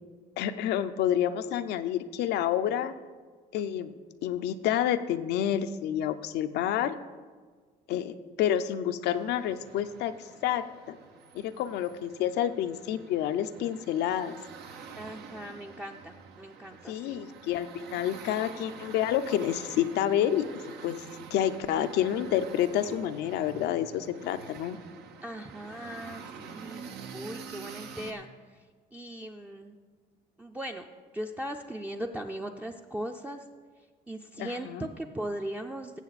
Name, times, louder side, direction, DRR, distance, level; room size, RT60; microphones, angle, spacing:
voice 1, 0.4-2.9 3.5-3.9 4.2-7.0 7.9-11.0 11.3-14.4 16.9-20.4 20.8-21.0 21.3-24.8 34.4-34.9, left 10 dB, 85° left, 10 dB, 0.6 m, -29 dB
sound 1, 9.1-28.1, right 6 dB, 80° right, 1.0 m, -47 dB
voice 2, 15.0-17.2 25.2-26.9 27.1-28.3 28.9-29.8 30.4-30.8 31.1-33.4 34.1-36.0, right 1 dB, 10° right, 2 dB, 0.5 m, -38 dB
15.5 x 7.1 x 4.1 m, 1.5 s
cardioid pair, 110°, 17 cm